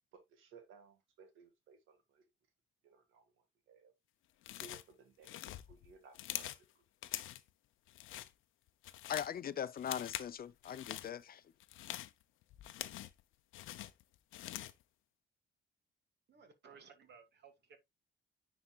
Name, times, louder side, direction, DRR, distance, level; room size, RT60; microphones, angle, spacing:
voice 1, 0.1-2.2 2.8-3.9 4.6-6.8, right 5 dB, 90° right, 1.9 m, -60 dB
sound 1, 4.4-4.9 5.2-6.6 7.0-7.5 7.9-8.3 8.7-9.4 9.8-10.3 10.6-11.1 11.6-13.2 13.5-14.8, left 14 dB, 85° left, 0.7 m, -45 dB
voice 2, 9.1-11.4, left 9 dB, 50° left, 0.6 m, -40 dB
voice 3, 16.3-17.8, right 6 dB, 60° right, 2.4 m, -59 dB
10.0 x 4.3 x 2.4 m
cardioid pair, 90°, 20 cm